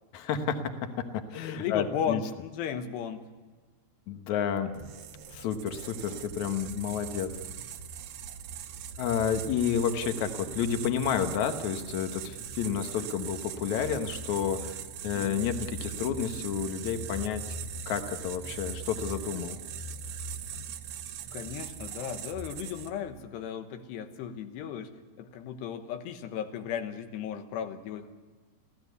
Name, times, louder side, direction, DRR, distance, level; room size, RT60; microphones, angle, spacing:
voice 1, 0.1-2.2 4.1-4.7 5.3-7.3 9.0-14.8 15.0-17.6 17.9-19.6, left 7 dB, 60° left, 7 dB, 2.1 m, -30 dB
voice 2, 1.6-3.2 15.2-15.4 21.3-24.9 25.2-28.1, left 8 dB, 90° left, 7 dB, 3.4 m, -35 dB
sound 1, 4.7-23.1, right 6 dB, 70° right, 2.3 m, -40 dB
26.5 x 16.0 x 8.2 m, 1.4 s
omnidirectional pair, 4.7 m